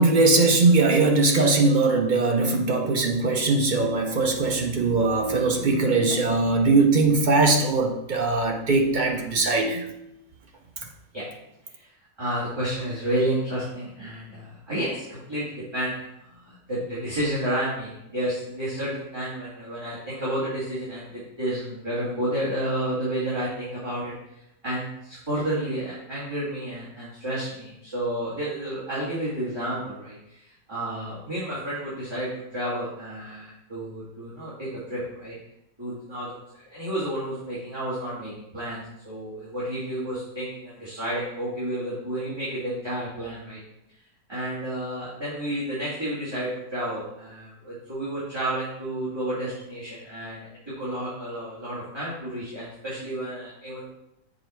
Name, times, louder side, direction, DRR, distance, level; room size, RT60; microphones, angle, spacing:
voice 1, 0.0-9.9, right 3 dB, 70° right, 2 dB, 0.4 m, -20 dB
voice 2, 12.2-24.1 24.6-35.3 35.8-43.6 44.3-53.9, right 1 dB, 15° right, -11 dB, 2.5 m, -31 dB
7.2 x 4.9 x 4.6 m, 0.84 s
omnidirectional pair, 1.9 m